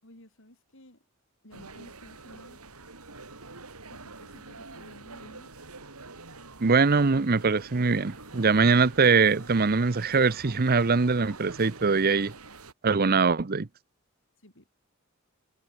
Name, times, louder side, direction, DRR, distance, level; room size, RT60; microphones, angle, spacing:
voice 1, 0.0-1.0 1.4-2.6 3.9-5.5 14.4-14.7, left 1 dB, 60° left, 7.7 m, -53 dB
sound 1, 1.5-12.7, right 3 dB, 85° right, 4.8 m, -46 dB
voice 2, 6.6-12.3 12.8-13.7, right 4 dB, 45° right, 0.7 m, -22 dB
head